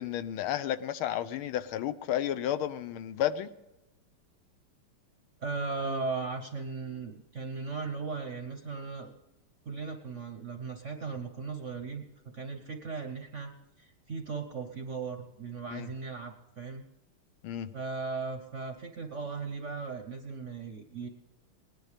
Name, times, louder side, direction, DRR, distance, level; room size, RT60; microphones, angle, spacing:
voice 1, 0.0-3.5 15.7-15.9 17.4-17.7, left 11 dB, 80° left, 13 dB, 1.5 m, -32 dB
voice 2, 5.4-9.1 9.7-12.0 12.3-13.5 13.8-16.8 17.7-21.1, right 4 dB, 50° right, 5 dB, 0.9 m, -37 dB
19.5 x 10.5 x 5.0 m, 0.95 s
omnidirectional pair, 2.4 m